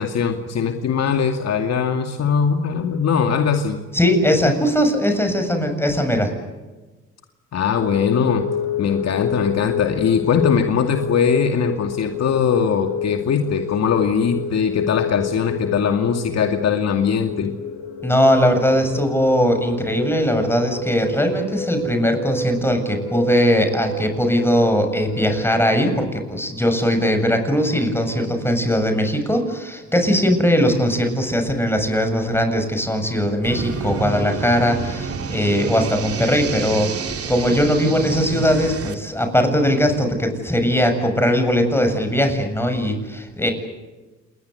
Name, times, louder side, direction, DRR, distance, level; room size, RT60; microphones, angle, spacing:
voice 1, 0.0-3.8 7.5-8.4 8.8-17.5, left 6 dB, 60° left, 5 dB, 2.4 m, -20 dB
voice 2, 3.9-6.3 18.0-43.5, equal, 10° left, 6 dB, 7.4 m, -20 dB
sound 1, 7.8-25.6, left 4 dB, 75° left, 3.5 m, -29 dB
sound 2, 33.4-38.9, right 5 dB, 50° right, 3.0 m, -28 dB
28.5 x 22.0 x 8.2 m, 1.2 s
cardioid pair, 90°, 30 cm